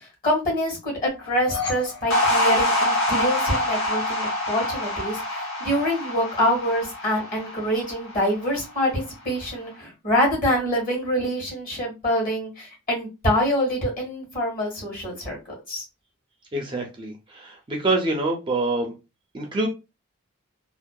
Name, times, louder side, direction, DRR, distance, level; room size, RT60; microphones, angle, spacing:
voice 1, 0.0-15.4 15.7-15.8, equal, 40° left, -1 dB, 1.2 m, -25 dB
sound 1, 1.1-3.4, left 5 dB, 90° left, 1.5 m, -35 dB
sound 2, 2.1-8.6, left 1 dB, 60° left, 0.8 m, -25 dB
voice 2, 16.5-18.9 19.3-19.7, right 2 dB, 20° right, 1 dB, 0.4 m, -26 dB
2.6 x 2.1 x 2.2 m, 0.27 s
head